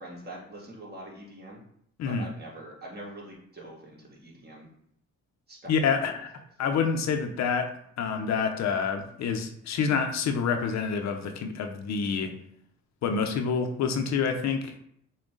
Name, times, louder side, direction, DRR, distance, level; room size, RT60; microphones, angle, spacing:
voice 1, 0.0-1.6 2.0-4.7 5.5-6.0 6.6-6.7, right 1 dB, 35° right, -3 dB, 1.7 m, -44 dB
voice 2, 5.7-6.3 6.6-12.3 13.0-14.8, left 6 dB, 65° left, 5 dB, 0.7 m, -27 dB
6.2 x 2.3 x 3.7 m, 0.68 s
cardioid pair, 90°, 30 cm